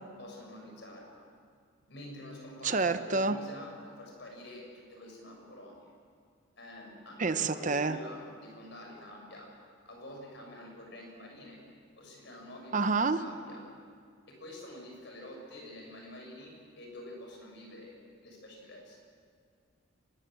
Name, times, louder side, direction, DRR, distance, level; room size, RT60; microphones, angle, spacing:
voice 1, 0.2-1.2 1.9-5.9 6.6-9.5 9.8-11.6 12.0-13.7 14.3-17.9 18.2-19.0, left 1 dB, 55° left, 0 dB, 6.6 m, -47 dB
voice 2, 2.6-3.4 7.2-8.0 12.7-13.2, right 4 dB, 35° right, 10 dB, 0.8 m, -28 dB
24.5 x 20.5 x 7.7 m, 2.1 s
head